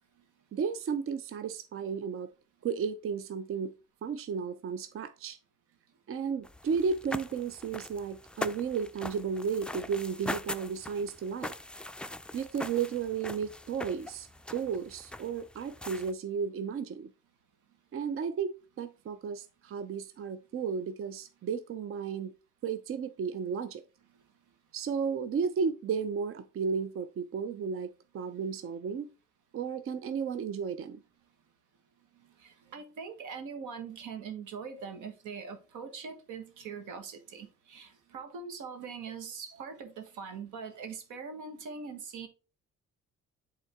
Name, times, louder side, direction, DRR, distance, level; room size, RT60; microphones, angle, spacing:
voice 1, 0.5-2.3 2.6-3.7 4.0-5.4 6.1-11.5 12.3-17.1 17.9-22.3 22.6-23.8 24.7-29.1 29.5-31.0, right 6 dB, 45° right, 0.5 m, -33 dB
sound 1, 6.4-16.1, left 1 dB, 5° left, 0.4 m, -41 dB
voice 2, 32.2-42.3, right 5 dB, 85° right, 1.4 m, -42 dB
8.1 x 3.7 x 3.5 m
cardioid pair, 90°, 30 cm